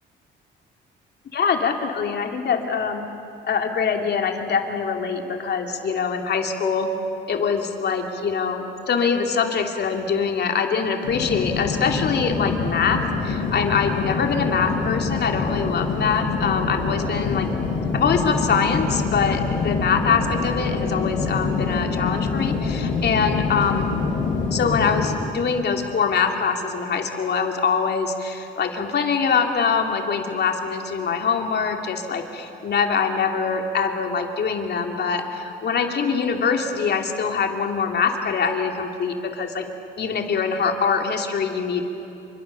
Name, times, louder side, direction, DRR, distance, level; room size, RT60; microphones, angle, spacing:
voice 1, 1.3-3.1 3.4-6.9 7.3-17.5 17.9-23.9 24.5-39.7 40.0-41.8, left 6 dB, 55° left, 4 dB, 2.8 m, -23 dB
sound 1, 11.0-25.1, left 4 dB, 75° left, 6.1 m, -25 dB
28.5 x 25.5 x 7.0 m, 3.0 s
cardioid pair, 90°, 20 cm